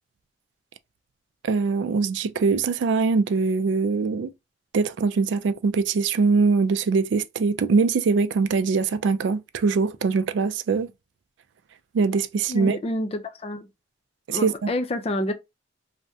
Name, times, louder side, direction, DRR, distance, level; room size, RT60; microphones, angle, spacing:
voice 1, 1.4-4.3 4.7-10.9 11.9-12.8 14.3-14.7, right 4 dB, 85° right, 0.3 m, -22 dB
voice 2, 12.5-13.7 14.3-15.3, left 1 dB, 35° left, 0.4 m, -28 dB
2.6 x 2.1 x 3.4 m
head